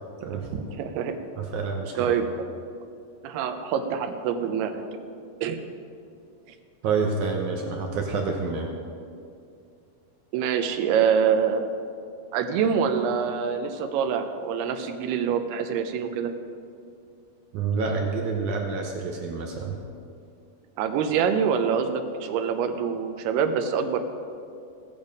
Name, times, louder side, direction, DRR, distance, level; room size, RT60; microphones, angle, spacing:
voice 1, 0.2-0.7 1.4-2.1 6.8-8.7 17.5-19.8, right 4 dB, 70° right, 1 dB, 1.9 m, -28 dB
voice 2, 0.8-1.2 2.0-2.3 3.2-4.8 5.4-5.6 10.3-11.6 12.3-16.3 20.8-24.0, right 7 dB, 85° right, 7 dB, 2.9 m, -25 dB
19.0 x 7.2 x 5.3 m, 2.4 s
omnidirectional pair, 4.5 m